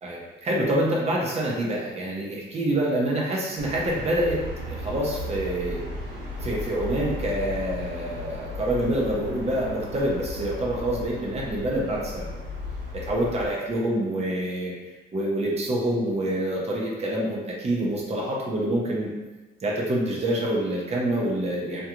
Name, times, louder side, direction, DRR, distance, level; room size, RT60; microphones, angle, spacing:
voice 1, 0.0-4.4 4.7-5.8 6.4-12.3 12.9-14.7 15.1-19.1 19.6-21.9, right 1 dB, 35° right, -3 dB, 0.7 m, -26 dB
sound 1, 3.6-13.5, left 2 dB, 70° right, 0.9 m, -35 dB
2.3 x 2.3 x 2.9 m, 1.2 s
cardioid pair, 90°, 20 cm